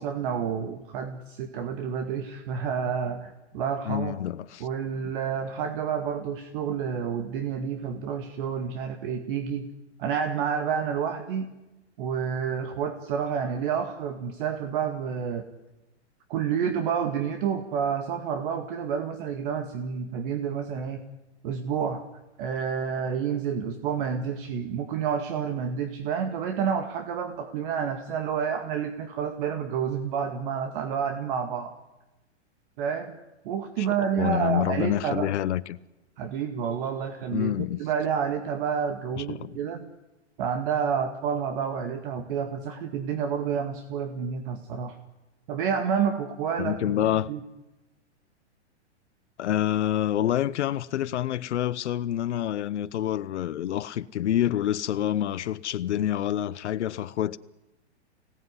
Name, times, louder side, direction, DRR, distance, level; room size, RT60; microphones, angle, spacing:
voice 1, 0.0-4.2 4.6-9.7 10.0-11.5 12.0-15.4 16.3-21.0 21.4-22.0 22.4-31.8 32.8-33.2 33.5-35.3 36.2-39.9 40.4-45.0 45.5-47.0 47.3-47.4, right 7 dB, 45° right, 2.0 m, -29 dB
voice 2, 3.8-4.7 33.8-35.8 37.3-37.8 39.2-39.5 46.6-47.3 49.4-57.4, left 11 dB, 75° left, 1.0 m, -27 dB
24.5 x 18.0 x 9.8 m
hypercardioid pair, 150°, 35 cm